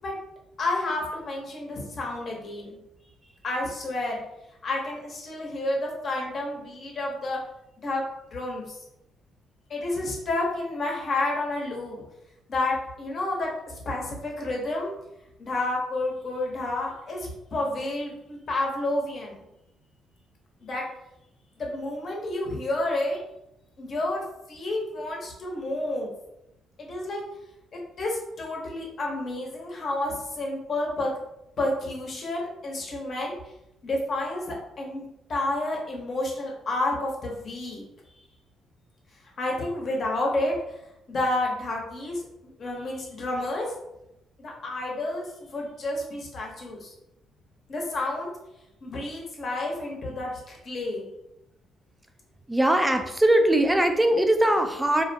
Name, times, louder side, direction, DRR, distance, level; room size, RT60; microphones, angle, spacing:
voice 1, 0.6-2.7 3.4-4.2 4.6-7.4 7.8-8.0 8.3-8.8 9.7-12.0 12.5-14.9 15.4-19.4 20.6-20.8 21.6-23.2 23.8-24.2 24.5-26.1 26.8-27.2 27.7-31.1 31.6-33.4 33.8-37.8 39.4-40.6 41.1-42.2 42.6-43.7 44.4-46.9 47.7-48.3 48.8-51.0, left 2 dB, 50° left, -1 dB, 0.7 m, -30 dB
voice 2, 52.5-55.0, right 1 dB, 10° right, 5 dB, 0.4 m, -21 dB
2.4 x 2.1 x 2.7 m, 0.86 s
cardioid pair, 75°, 0 cm